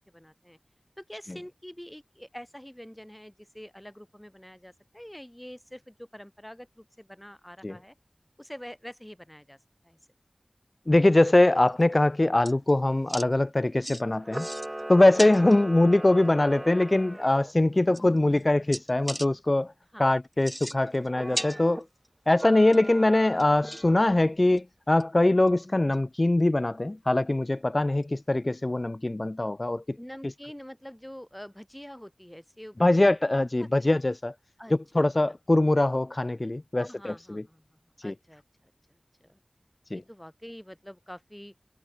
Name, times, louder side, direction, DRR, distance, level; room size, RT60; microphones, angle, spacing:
voice 1, 0.1-0.6 1.0-7.9 8.4-9.6 9.8-10.0 15.2-15.3 19.9-20.1 30.0-33.1 33.6-33.9 34.6-35.1 36.8-38.4 38.9-39.4 39.9-41.5, equal, 10° left, 7.1 m, -46 dB
voice 2, 10.9-14.5 14.9-19.7 20.0-21.8 22.3-30.0 30.2-30.3 32.8-34.3 34.7-37.4 38.0-38.1 39.9-40.0, left 2 dB, 45° left, 0.3 m, -23 dB
sound 1, 11.7-12.0 12.4-12.7 13.1-13.3 13.8-14.0 14.3-14.8 15.1-15.6 16.9-17.0 17.5-17.6 17.9-18.4 18.7-19.3 20.3-21.1 21.3-22.1 22.4-22.9 23.4-24.0 24.6-24.7 25.0-25.1 25.5-25.6 25.9-26.0 28.0-28.1, equal, 10° right, 1.1 m, -37 dB
Camera, 14.2-17.5 21.1-21.8 22.3-24.2, right 1 dB, 30° right, 1.8 m, -39 dB
wide cardioid pair, 40°, 0 cm